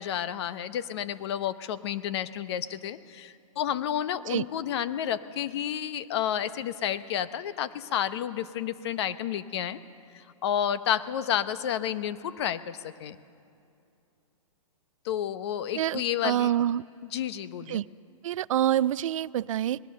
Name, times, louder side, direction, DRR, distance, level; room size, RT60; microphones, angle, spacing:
voice 1, 0.0-9.8 10.1-13.2 15.0-16.5 17.1-17.8, left 10 dB, 50° left, 13 dB, 1.0 m, -31 dB
voice 2, 15.7-16.8 17.7-17.8 18.2-19.8, right 11 dB, 65° right, 19 dB, 0.4 m, -26 dB
23.0 x 19.0 x 6.6 m, 2.6 s
hypercardioid pair, 150°, 18 cm